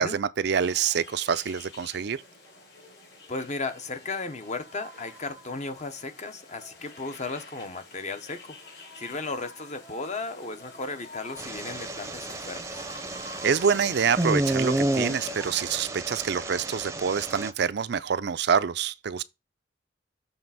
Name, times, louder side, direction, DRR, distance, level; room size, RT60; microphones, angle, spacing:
voice 1, 0.0-2.2 13.4-19.2, right 7 dB, 65° right, 0.5 m, -26 dB
sound 1, 0.5-15.8, left 2 dB, 60° left, 4.0 m, -47 dB
voice 2, 3.3-8.6 9.0-12.8, left 3 dB, 40° left, 0.9 m, -35 dB
sound 2, 11.4-17.5, right 1 dB, 15° right, 0.7 m, -30 dB
7.2 x 3.4 x 5.7 m
head